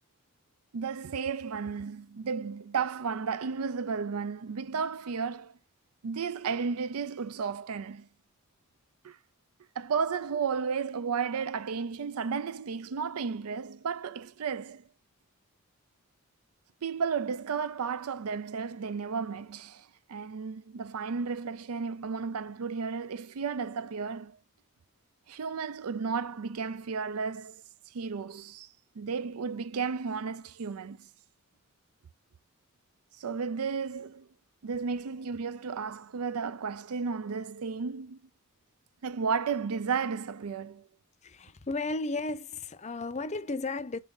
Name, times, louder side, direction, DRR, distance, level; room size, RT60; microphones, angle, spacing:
voice 1, 0.7-5.6 6.0-8.1 9.0-9.2 9.8-14.9 16.8-24.4 25.3-27.6 27.9-28.7 29.0-31.1 33.2-34.3 34.6-38.2 39.0-40.9, right 5 dB, 90° right, 0.5 m, -33 dB
voice 2, 41.2-44.0, left 3 dB, 30° left, 0.6 m, -34 dB
7.4 x 2.6 x 5.3 m
head